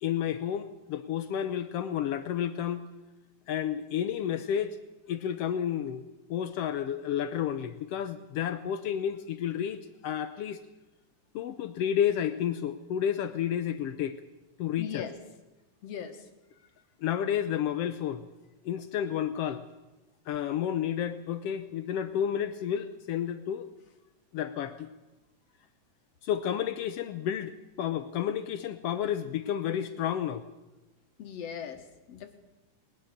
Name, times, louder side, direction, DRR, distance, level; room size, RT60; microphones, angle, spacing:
voice 1, 0.0-2.8 3.5-4.8 5.1-6.0 6.3-10.6 11.3-14.2 14.6-15.0 17.0-18.3 18.6-19.6 20.3-23.7 24.3-24.9 26.2-27.5 27.8-30.4, left 9 dB, 90° left, 10 dB, 1.3 m, -31 dB
voice 2, 14.8-15.1 15.8-16.3 31.2-32.4, left 8 dB, 60° left, 7 dB, 2.0 m, -39 dB
20.5 x 19.5 x 6.6 m, 1.0 s
omnidirectional pair, 3.8 m